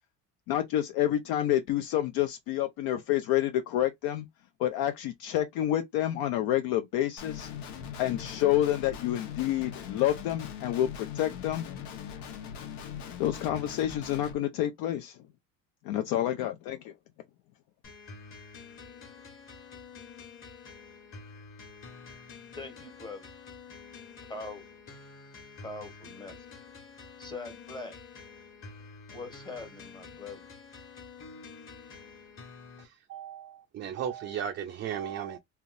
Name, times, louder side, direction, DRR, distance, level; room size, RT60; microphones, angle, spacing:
voice 1, 0.5-4.3 4.6-7.5 8.0-11.7 13.2-15.2 15.8-16.9, left 12 dB, 65° left, 0.5 m, -28 dB
Guitar, 7.2-14.3, left 8 dB, 85° left, 1.1 m, -40 dB
sound 1, 17.8-32.8, left 5 dB, 35° left, 1.4 m, -48 dB
voice 2, 22.6-23.3 24.3-24.6 25.6-26.5 27.2-28.0 29.1-30.5, left 3 dB, 10° left, 0.9 m, -42 dB
voice 3, 32.8-35.4, right 9 dB, 30° right, 0.4 m, -36 dB
3.5 x 2.8 x 2.5 m
cardioid pair, 135°, 40 cm